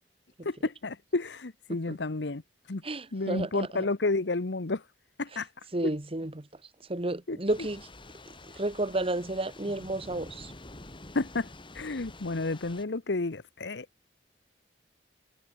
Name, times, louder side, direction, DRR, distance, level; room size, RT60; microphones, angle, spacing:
voice 1, 0.4-2.4 2.7-2.8 3.1-4.8 5.2-5.5 7.3-7.4 11.1-11.5 11.7-13.9, left 3 dB, 80° left, 1.0 m, -31 dB
voice 2, 2.8-3.8 5.7-6.5 6.9-7.8 8.5-10.5, right 2 dB, 35° right, 1.7 m, -31 dB
Thunder / Rain, 7.5-12.8, left 2 dB, 30° left, 3.5 m, -48 dB
head